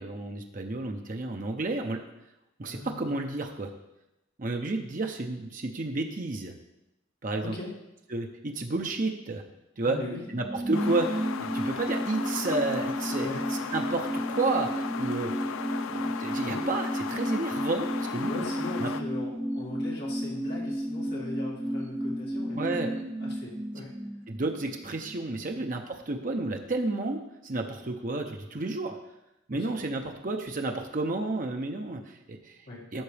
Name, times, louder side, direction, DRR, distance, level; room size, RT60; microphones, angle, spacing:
voice 1, 0.0-2.0 2.6-3.7 4.4-6.5 7.2-7.5 8.1-9.4 9.8-10.0 10.3-15.4 15.9-18.5 18.8-18.9 22.5-22.9 24.3-29.0 29.5-32.6 32.9-33.0, right 2 dB, 40° right, 3 dB, 0.6 m, -31 dB
voice 2, 2.6-3.2 7.4-7.7 9.8-10.2 13.2-13.4 16.4-16.7 18.3-22.6 23.2-23.9 25.2-25.6 29.5-29.7 32.6-32.8, left 2 dB, 50° left, -4 dB, 2.0 m, -40 dB
sound 1, 10.1-25.2 25.5-25.6, equal, 10° right, 0.3 m, -33 dB
sound 2, 10.7-19.0, left 6 dB, 80° left, 0.4 m, -37 dB
11.5 x 6.4 x 3.4 m, 0.92 s
head